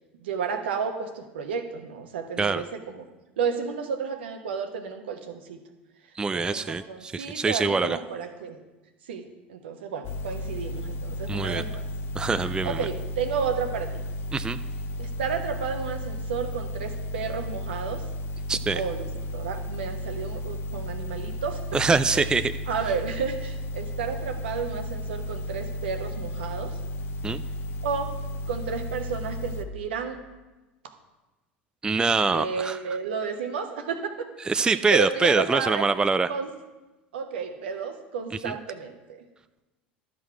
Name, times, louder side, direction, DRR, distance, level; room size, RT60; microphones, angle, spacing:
voice 1, 0.2-3.0 3.4-5.6 6.3-8.6 9.1-11.8 12.6-14.0 15.0-18.0 18.7-21.6 22.1-22.3 22.7-26.7 27.8-28.1 28.5-30.2 30.8-30.9 32.3-34.3 34.7-35.9 36.3-36.5 37.1-39.2, right 6 dB, 75° right, 6 dB, 1.1 m, -32 dB
voice 2, 6.2-8.0 11.3-11.6 12.1-12.9 14.3-14.6 18.5-18.8 21.7-22.5 27.2-27.4 31.8-32.8 34.5-36.3 38.4-38.5, right 4 dB, 15° right, 11 dB, 0.3 m, -24 dB
sound 1, 10.0-29.6, left 1 dB, 40° left, 0.7 m, -34 dB
12.0 x 6.3 x 4.6 m, 1.1 s
hypercardioid pair, 80°, 6 cm